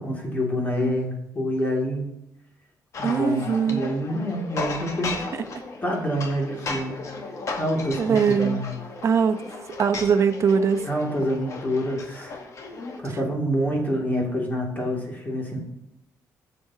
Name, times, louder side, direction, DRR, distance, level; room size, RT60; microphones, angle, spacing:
voice 1, 0.0-2.1 3.0-5.2 5.8-7.0 7.6-8.8 10.8-12.4 13.0-15.6, equal, 25° left, -1 dB, 2.5 m, -27 dB
sound 1, 2.9-13.0, left 3 dB, 50° left, 1.4 m, -35 dB
voice 2, 3.0-3.9 8.0-8.6 9.0-9.4 9.8-10.8, right 6 dB, 45° right, 8 dB, 0.8 m, -21 dB
14.0 x 7.0 x 2.8 m, 0.83 s
cardioid pair, 110°, 7 cm